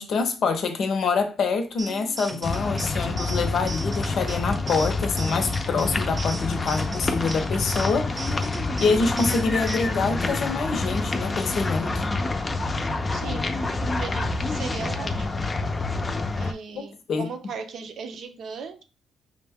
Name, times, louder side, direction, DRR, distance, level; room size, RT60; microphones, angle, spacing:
voice 1, 0.0-8.1 8.8-12.0 16.7-17.3, left 4 dB, 65° left, 0.7 m, -26 dB
sound 1, 1.8-9.8, right 3 dB, 20° right, 0.7 m, -38 dB
sound 2, 2.4-16.5, left 3 dB, 25° left, 0.5 m, -27 dB
voice 2, 13.1-13.6 13.9-15.4 16.4-18.8, right 5 dB, 65° right, 0.6 m, -37 dB
5.1 x 2.2 x 3.5 m
cardioid pair, 90°, 0 cm